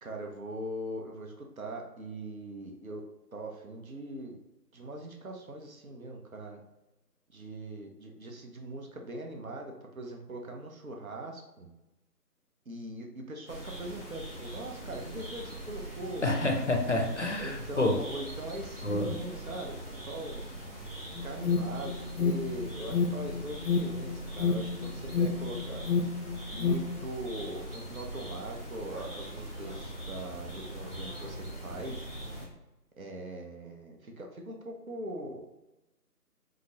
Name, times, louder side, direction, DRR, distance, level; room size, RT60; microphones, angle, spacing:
voice 1, 0.0-3.0 3.3-4.4 4.7-6.6 7.3-11.7 12.7-16.3 17.4-20.4 21.2-25.8 26.5-31.4 31.6-32.1 33.0-35.5, right 1 dB, 60° right, 2 dB, 0.8 m, -41 dB
sound 1, 13.5-32.5, right 1 dB, 35° right, 1.0 m, -42 dB
voice 2, 16.2-17.9 18.8-19.2, left 2 dB, 50° left, 2 dB, 0.6 m, -28 dB
Alarm, 21.2-27.0, left 5 dB, 90° left, 0.7 m, -30 dB
4.9 x 2.1 x 2.8 m, 0.96 s
figure-of-eight pair, 160°, 48 cm